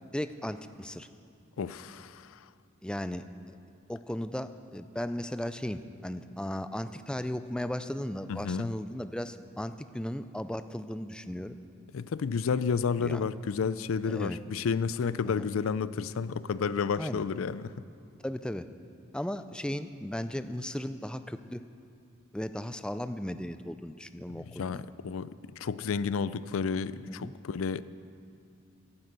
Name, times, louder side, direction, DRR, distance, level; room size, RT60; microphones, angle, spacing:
voice 1, 0.1-1.1 2.8-3.6 3.9-11.6 13.0-13.2 14.0-14.4 17.0-17.2 18.2-18.7 19.1-21.6 22.3-24.8 27.1-27.3, left 1 dB, 5° left, 11 dB, 0.3 m, -36 dB
voice 2, 1.6-2.4 8.3-8.7 11.9-17.7 24.3-27.8, left 5 dB, 80° left, 16 dB, 0.4 m, -31 dB
11.5 x 9.7 x 8.1 m, 2.4 s
head